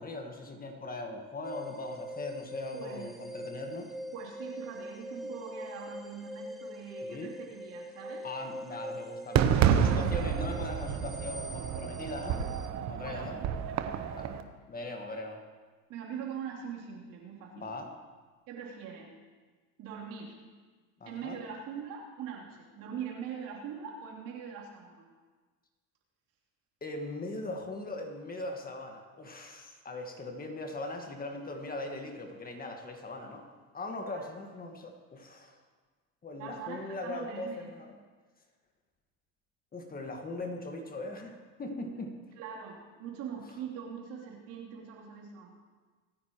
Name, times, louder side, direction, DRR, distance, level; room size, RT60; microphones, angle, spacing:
voice 1, 0.0-3.9 7.0-7.3 8.2-12.5 12.9-13.4 14.2-14.3 14.7-15.4 17.5-17.9 21.0-21.4 26.8-33.4 33.7-35.6 36.2-37.9 39.7-42.2, left 2 dB, 25° left, 3 dB, 1.7 m, -40 dB
sound 1, 1.4-12.7, equal, ahead, 1.0 m, -43 dB
voice 2, 2.7-3.2 4.1-8.3 13.0-14.1 15.9-17.8 18.5-19.1 19.8-20.3 21.1-25.1 34.1-34.2 36.4-37.8 42.4-45.5, right 7 dB, 70° right, -3 dB, 3.4 m, -42 dB
Fireworks, 9.4-14.4, right 8 dB, 50° right, 1.0 m, -29 dB
25.0 x 9.6 x 3.1 m, 1.4 s
supercardioid pair, 100°, 34 cm